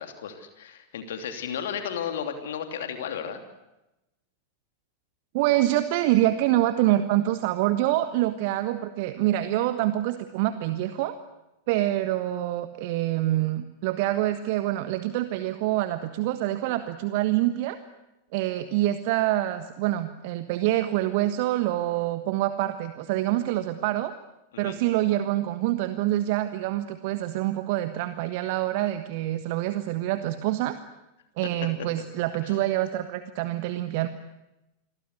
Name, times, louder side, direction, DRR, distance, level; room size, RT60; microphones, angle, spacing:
voice 1, 0.0-3.4 24.5-24.7 32.4-32.6, left 8 dB, 60° left, 7 dB, 3.0 m, -34 dB
voice 2, 5.3-11.1 11.7-17.8 18.3-24.1 24.6-30.8 31.4-34.1, right 15 dB, 50° right, 11 dB, 1.4 m, -26 dB
28.0 x 23.0 x 8.2 m, 0.95 s
figure-of-eight pair, 90°, 0 cm